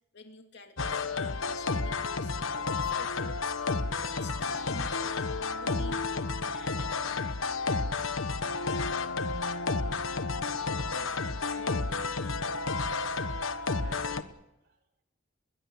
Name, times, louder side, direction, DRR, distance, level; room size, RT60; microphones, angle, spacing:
voice 1, 0.1-3.4 4.0-5.2 5.6-7.5, left 3 dB, 60° left, 5 dB, 2.6 m, -48 dB
sound 1, 0.8-14.2, left 4 dB, 85° left, 1.3 m, -31 dB
voice 2, 10.9-12.2 13.8-14.2 14.5-14.8, right 2 dB, 55° right, 3 dB, 3.9 m, -52 dB
21.5 x 21.0 x 8.3 m, 0.86 s
head